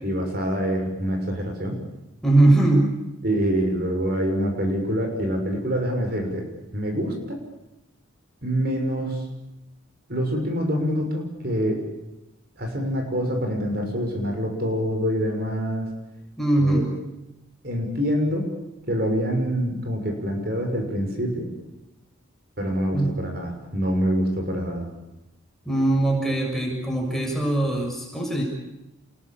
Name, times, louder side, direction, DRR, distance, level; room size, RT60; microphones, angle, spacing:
voice 1, 0.0-1.8 3.2-6.5 6.7-7.4 8.4-9.2 10.1-11.8 12.6-15.9 16.6-16.8 17.6-18.5 18.9-21.5 22.6-24.9, equal, 45° right, 3 dB, 6.2 m, -25 dB
voice 2, 2.2-2.9 16.4-16.8 22.9-23.1 25.6-28.4, right 2 dB, ahead, -1 dB, 6.7 m, -21 dB
28.5 x 21.5 x 8.8 m, 0.94 s
head